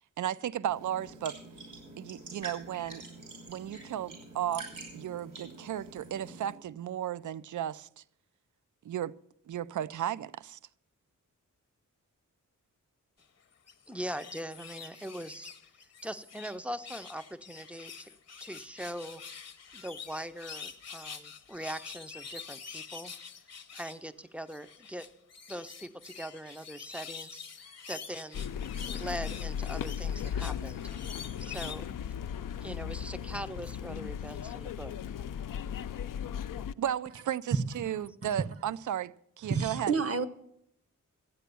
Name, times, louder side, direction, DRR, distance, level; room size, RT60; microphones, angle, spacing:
voice 1, 0.2-1.4 2.0-3.0 3.5-4.7 4.9-7.9 8.8-9.1 9.5-10.6 36.8-39.9, right 10 dB, 65° right, 0.5 m, -34 dB
sound 1, 0.7-6.5, right 3 dB, 90° right, 6.3 m, -46 dB
Parrots in tree, 13.5-16.6 16.8-24.0 24.5-31.9 32.4-32.5, left 6 dB, 50° left, 0.9 m, -46 dB
voice 2, 13.9-15.5 15.8-18.1 18.4-19.2 19.7-23.1 23.7-25.1 25.5-30.8 31.4-32.2 32.6-34.9, right 1 dB, 5° right, 0.5 m, -41 dB
sound 2, 28.3-36.7, left 8 dB, 80° left, 0.5 m, -37 dB
voice 3, 39.5-40.3, right 5 dB, 45° right, 0.9 m, -29 dB
13.5 x 9.2 x 6.8 m
wide cardioid pair, 165°, 32 cm